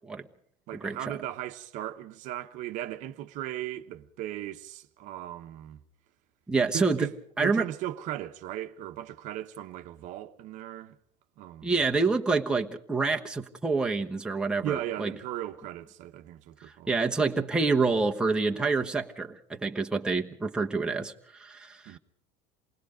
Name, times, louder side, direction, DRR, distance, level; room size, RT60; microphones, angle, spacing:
voice 1, 0.7-5.8 6.7-7.1 7.4-11.0 11.4-11.8 14.6-17.0 21.9-22.0, right 13 dB, 50° right, 1.1 m, -37 dB
voice 2, 6.5-7.1 7.4-7.6 11.6-15.1 16.9-22.0, right 4 dB, 5° right, 1.2 m, -27 dB
28.0 x 20.0 x 5.1 m
cardioid pair, 145°, 16 cm